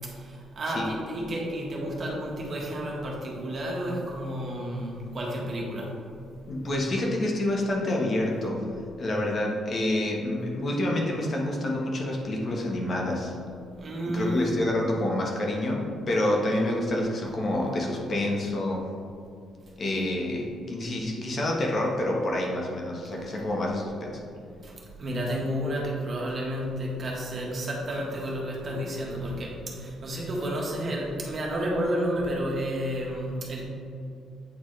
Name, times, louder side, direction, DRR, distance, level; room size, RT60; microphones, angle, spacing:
voice 1, 0.0-6.0 13.8-14.5 24.6-33.6, equal, 45° right, -2 dB, 1.4 m, -31 dB
voice 2, 6.5-8.7 9.0-13.4 14.0-18.9 19.8-24.2, left 1 dB, 45° left, -1 dB, 1.2 m, -28 dB
8.5 x 4.1 x 3.2 m, 2.4 s
cardioid pair, 90°, 0 cm